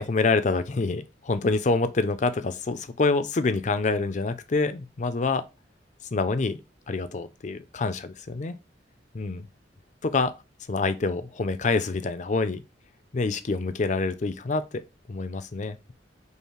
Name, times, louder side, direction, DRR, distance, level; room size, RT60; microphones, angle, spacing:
voice 1, 0.0-5.4 6.1-6.6 6.9-8.6 9.1-9.4 10.0-10.3 10.7-12.6 13.1-14.8 15.1-15.9, left 3 dB, 40° left, 0.5 m, -26 dB
5.5 x 2.1 x 4.6 m
head